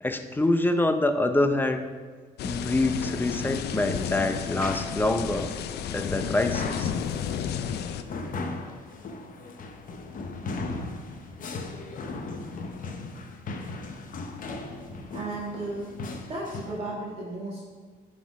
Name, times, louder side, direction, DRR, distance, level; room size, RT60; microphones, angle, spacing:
voice 1, 0.0-1.9 2.4-5.5 5.9-6.9, left 2 dB, 10° left, 8 dB, 0.5 m, -25 dB
sound 1, 2.4-8.0, left 8 dB, 70° left, 0.4 m, -32 dB
sound 2, 4.0-16.8, left 3 dB, 50° left, 0.8 m, -38 dB
voice 2, 15.1-15.9 16.3-17.6, right 2 dB, 35° right, -7 dB, 1.7 m, -34 dB
9.0 x 4.2 x 4.8 m, 1.5 s
cardioid pair, 100°, 18 cm